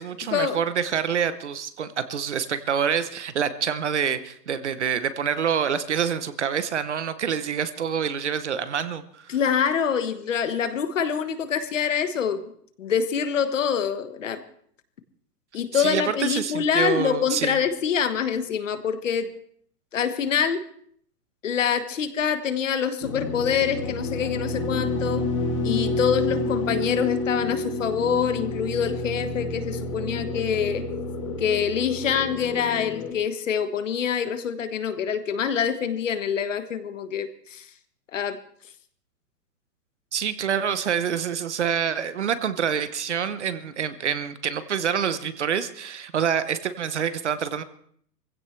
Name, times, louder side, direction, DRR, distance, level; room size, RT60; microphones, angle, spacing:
voice 1, 0.0-9.3 15.7-17.6 40.1-47.6, right 7 dB, 45° right, 13 dB, 0.8 m, -26 dB
voice 2, 9.3-12.4 12.8-14.4 15.5-19.3 19.9-20.6 21.4-25.2 25.6-30.8 31.4-37.6 38.1-38.4, left 7 dB, 50° left, 10 dB, 1.4 m, -25 dB
sound 1, 23.0-33.1, left 2 dB, 20° left, 1.1 m, -29 dB
22.0 x 16.0 x 3.2 m, 0.62 s
hypercardioid pair, 180°, 48 cm